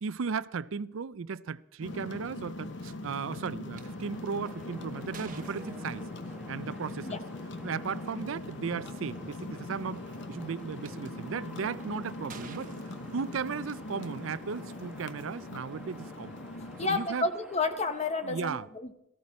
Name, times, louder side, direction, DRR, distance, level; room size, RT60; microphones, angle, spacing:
voice 1, 0.0-6.0 6.5-7.2 7.6-12.7 13.1-16.4 16.8-17.3 18.2-18.6, right 5 dB, 75° right, 0.5 m, -36 dB
sound 1, 1.8-17.0, left 2 dB, 60° left, 0.9 m, -41 dB
sound 2, 3.7-3.8 4.5-6.3 7.6-7.8 8.4-8.5 8.7-9.2 9.9-10.9 11.5-11.8 12.3-13.7, right 4 dB, 40° right, 1.2 m, -49 dB
sound 3, 3.8-18.4, equal, 5° right, 1.3 m, -51 dB
voice 2, 16.8-18.9, left 3 dB, 30° left, 0.8 m, -31 dB
17.5 x 14.5 x 4.3 m
head